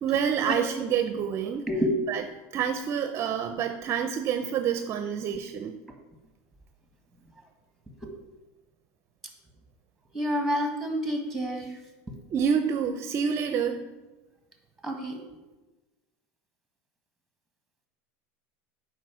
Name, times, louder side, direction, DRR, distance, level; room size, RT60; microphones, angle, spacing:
voice 1, 0.0-1.7 2.1-2.3 2.5-5.7 12.3-13.9, right 7 dB, 35° right, 8 dB, 0.5 m, -28 dB
voice 2, 10.1-11.7 14.8-15.2, equal, ahead, 3 dB, 1.5 m, -28 dB
7.6 x 5.0 x 6.1 m, 1.1 s
supercardioid pair, 135°, 7 cm